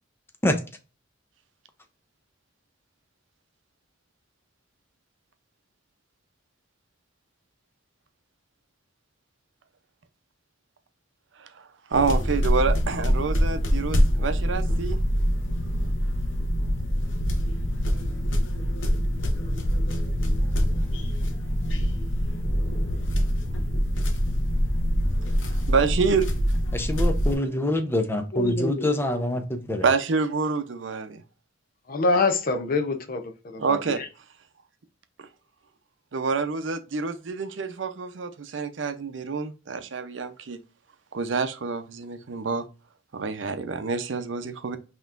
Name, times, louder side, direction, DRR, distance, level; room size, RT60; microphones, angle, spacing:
sound 1, 11.9-27.4, equal, 80° left, 0.8 m, -24 dB
voice 1, 11.9-15.0 25.7-26.3 29.8-31.2 33.6-34.0 36.1-40.6 41.1-42.7 43.1-44.8, right 4 dB, 75° right, 0.6 m, -27 dB
voice 2, 26.7-29.9, left 1 dB, 10° left, 0.6 m, -25 dB
voice 3, 28.3-28.9 31.9-34.1, left 3 dB, 50° left, 0.6 m, -26 dB
5.5 x 2.9 x 2.4 m
head